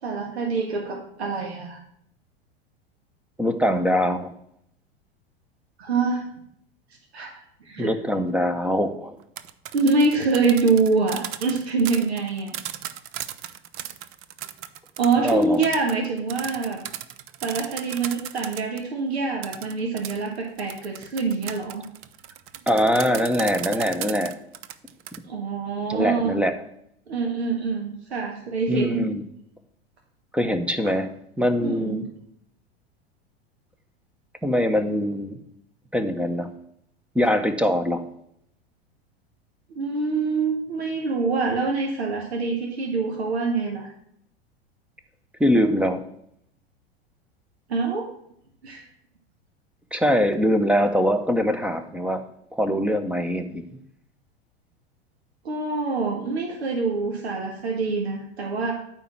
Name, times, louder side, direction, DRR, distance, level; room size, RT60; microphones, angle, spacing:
voice 1, 0.0-1.8 5.8-6.3 7.1-7.3 7.6-7.9 9.7-12.5 15.0-16.8 17.4-21.8 25.3-26.4 27.1-29.1 31.6-32.0 39.7-43.9 47.7-48.1 48.6-48.9 55.4-58.7, right 4 dB, 85° right, 0 dB, 1.8 m, -25 dB
voice 2, 3.4-4.3 7.8-9.2 15.2-15.6 22.7-24.3 25.9-26.5 28.7-29.2 30.3-31.1 31.4-32.0 34.4-35.4 35.9-36.5 37.1-38.0 45.4-46.0 49.9-52.2 52.5-53.7, equal, 5° right, 9 dB, 1.0 m, -22 dB
sound 1, 9.2-18.8 19.4-25.2, right 11 dB, 40° right, 0.7 m, -36 dB
9.1 x 4.5 x 7.4 m, 0.72 s
hypercardioid pair, 100°, 32 cm